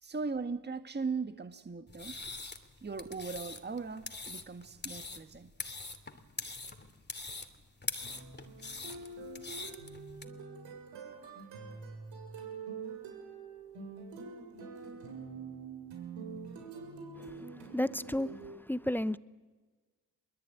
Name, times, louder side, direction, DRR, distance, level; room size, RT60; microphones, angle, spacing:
voice 1, 0.0-2.2 2.8-5.5, right 4 dB, 20° right, 1.6 m, -38 dB
sound 1, 1.9-10.2, left 3 dB, 20° left, 2.9 m, -43 dB
sound 2, 8.0-18.4, right 4 dB, 65° right, 7.2 m, -45 dB
voice 2, 17.1-19.2, left 1 dB, 5° left, 0.9 m, -34 dB
25.0 x 22.0 x 9.3 m
hypercardioid pair, 50°, 49 cm